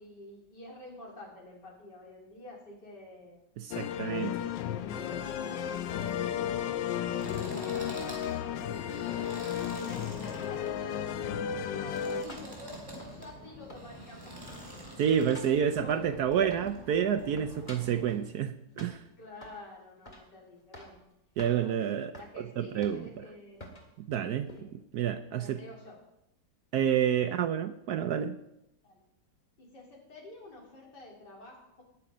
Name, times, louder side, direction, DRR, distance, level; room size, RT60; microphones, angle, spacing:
voice 1, 0.0-3.4 4.0-9.4 9.8-14.3 14.6-14.7 15.2-16.2 19.2-21.0 21.6-23.6 24.5-24.7 25.3-26.0 27.2-27.4 28.8-29.0 29.6-31.8, left 2 dB, 60° left, -2 dB, 3.8 m, -49 dB
voice 2, 3.6-4.3 15.0-19.0 21.4-23.1 24.0-24.5 24.9-25.6 26.7-28.4, right 8 dB, 70° right, 10 dB, 1.0 m, -29 dB
sound 1, 3.7-12.2, left 9 dB, 75° left, 1.3 m, -34 dB
sound 2, 6.0-18.2, equal, 10° right, 3.4 m, -46 dB
sound 3, 11.6-13.4 13.7-14.2 14.5-16.9 17.1-18.3 18.8-19.7 20.0-20.3 20.6-21.0 21.4-21.6 22.1-22.3 22.8-23.2 23.6-23.9 24.5-24.6, left 1 dB, 25° left, 1.8 m, -50 dB
19.5 x 7.0 x 5.0 m, 0.84 s
omnidirectional pair, 2.1 m